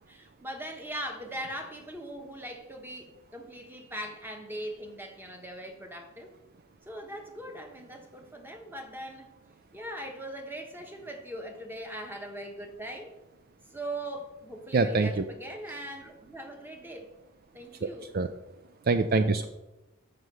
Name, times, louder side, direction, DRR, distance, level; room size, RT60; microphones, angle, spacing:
voice 1, 0.1-6.3 6.8-9.3 9.7-13.1 13.7-17.1 17.5-18.1, right 1 dB, 10° right, 3 dB, 1.2 m, -40 dB
voice 2, 14.7-15.2 17.8-17.9 18.1-18.3 18.8-19.5, right 3 dB, 45° right, 9 dB, 0.4 m, -24 dB
7.4 x 6.5 x 6.2 m, 0.98 s
head